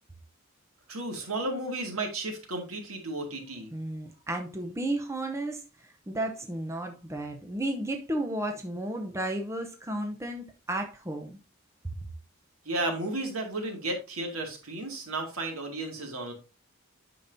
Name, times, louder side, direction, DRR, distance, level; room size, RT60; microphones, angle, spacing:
voice 1, 0.9-3.7 12.7-16.3, right 2 dB, 85° right, 2.1 m, -33 dB
voice 2, 3.7-11.4, right 1 dB, 15° right, 0.7 m, -33 dB
8.7 x 5.9 x 2.7 m
head